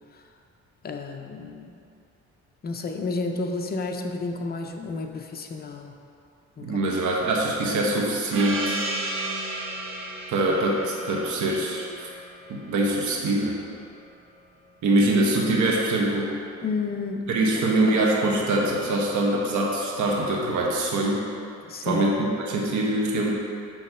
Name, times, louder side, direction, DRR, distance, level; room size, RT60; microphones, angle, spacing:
voice 1, 0.8-1.7 2.6-5.9 6.6-6.8 16.6-17.5 17.8-18.0 21.6-22.0, left 3 dB, 30° left, 3 dB, 0.6 m, -31 dB
voice 2, 6.6-8.8 10.3-12.1 12.5-13.6 14.8-16.3 17.3-21.3 21.8-23.3, right 2 dB, 75° right, -2 dB, 1.1 m, -23 dB
Gong, 8.3-13.4, right 2 dB, 45° right, 1.0 m, -33 dB
6.2 x 3.1 x 5.4 m, 2.5 s
cardioid pair, 90°, 30 cm